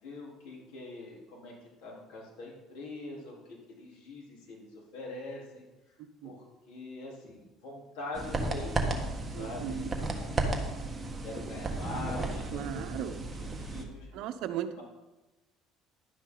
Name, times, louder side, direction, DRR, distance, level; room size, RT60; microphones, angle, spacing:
voice 1, 0.0-1.5 1.8-5.7 6.2-10.6 11.2-14.1 14.7-14.8, left 2 dB, 80° left, -3 dB, 3.7 m, -44 dB
sound 1, 8.1-13.8, right 2 dB, 15° right, 1.5 m, -34 dB
voice 2, 9.3-9.9 12.5-13.2 14.1-14.8, right 10 dB, 70° right, 10 dB, 0.8 m, -36 dB
11.0 x 9.7 x 3.9 m, 1.1 s
cardioid pair, 125°, 0 cm